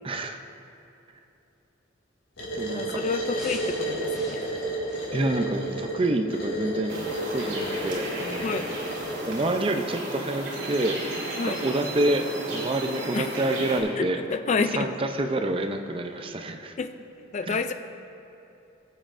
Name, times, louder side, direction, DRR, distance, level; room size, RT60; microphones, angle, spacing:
voice 1, 0.0-0.4 2.5-3.0 5.1-8.5 9.3-11.0 11.4-14.2 14.7-16.8 17.5-17.6, right 1 dB, 30° right, 5 dB, 0.5 m, -28 dB
sound 1, 2.4-9.5, right 1 dB, 85° left, 2.6 m, -32 dB
voice 2, 2.7-4.4 8.4-8.7 11.4-11.6 13.1-13.4 14.0-14.9 16.8-16.9 17.3-17.7, left 4 dB, 35° left, 9 dB, 0.3 m, -29 dB
sound 2, 3.4-5.9 6.4-6.5, right 1 dB, ahead, 2.2 m, -43 dB
sound 3, 6.9-13.8, right 1 dB, 65° right, 2.6 m, -34 dB
21.0 x 7.5 x 2.5 m, 2.9 s
head